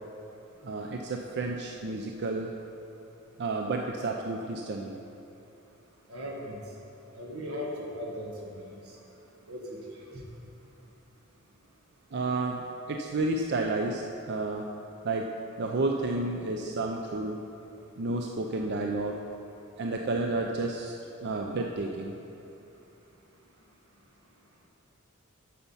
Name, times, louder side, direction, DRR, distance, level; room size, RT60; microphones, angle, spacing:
voice 1, 0.6-2.5 3.4-5.0 12.1-14.7 15.0-15.3 15.6-17.4 18.0-19.2 19.8-21.0 21.2-22.2, right 2 dB, 50° right, 2 dB, 0.5 m, -31 dB
voice 2, 6.1-6.6 7.1-8.7 9.5-10.2, equal, 85° right, -1 dB, 1.6 m, -38 dB
8.5 x 6.8 x 5.5 m, 2.8 s
head